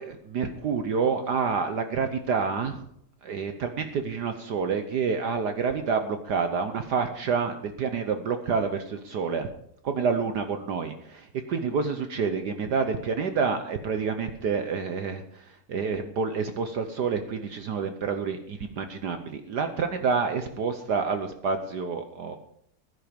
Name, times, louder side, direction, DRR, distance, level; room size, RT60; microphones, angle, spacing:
voice 1, 0.0-2.8 3.2-9.5 9.8-22.4, right 5 dB, 60° right, 8 dB, 1.3 m, -28 dB
15.5 x 10.5 x 5.2 m, 0.72 s
omnidirectional pair, 2.4 m